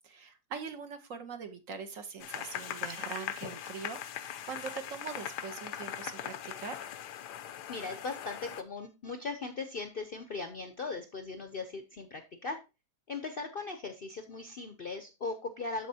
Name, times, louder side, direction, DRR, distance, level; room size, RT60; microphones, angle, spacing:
voice 1, 0.0-4.2 4.5-6.9, right 6 dB, 60° right, 7 dB, 1.2 m, -42 dB
sound 1, 2.2-8.6, left 10 dB, 90° left, 1.2 m, -40 dB
voice 2, 7.7-12.6 13.1-15.9, left 3 dB, 50° left, 7 dB, 0.6 m, -39 dB
13.0 x 4.3 x 2.7 m, 0.27 s
omnidirectional pair, 1.7 m